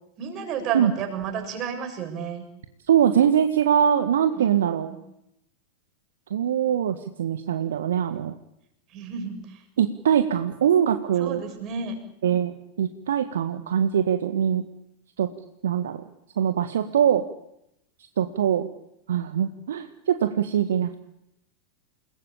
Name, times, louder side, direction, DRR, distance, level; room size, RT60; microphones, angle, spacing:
voice 1, 0.2-2.4 4.4-5.0 8.9-9.6 11.2-12.0, right 7 dB, 35° right, 5 dB, 7.5 m, -32 dB
voice 2, 2.9-4.9 6.3-8.3 9.8-11.4 12.2-14.6 15.2-15.3 15.6-16.0 16.4-17.2 18.2-18.7 19.1-21.0, right 9 dB, 60° right, 9 dB, 1.7 m, -22 dB
29.5 x 21.0 x 8.7 m, 0.80 s
figure-of-eight pair, 90°, 0 cm